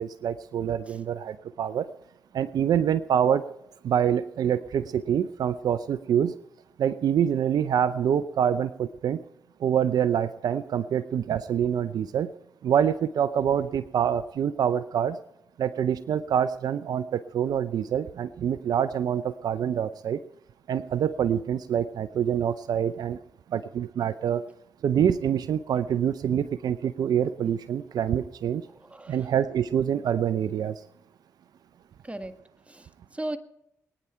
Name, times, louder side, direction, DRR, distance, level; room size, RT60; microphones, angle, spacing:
voice 1, 0.0-1.9 2.3-3.5 3.8-6.3 6.8-9.2 9.6-12.3 12.6-15.2 15.6-20.2 20.7-23.2 23.5-24.4 24.8-28.6 29.1-30.8, right 9 dB, 75° right, 15 dB, 0.6 m, -26 dB
voice 2, 28.7-29.3 32.0-32.3 32.7-33.4, right 1 dB, 20° right, 10 dB, 1.7 m, -37 dB
22.0 x 9.9 x 4.4 m, 0.83 s
supercardioid pair, 45°, 7 cm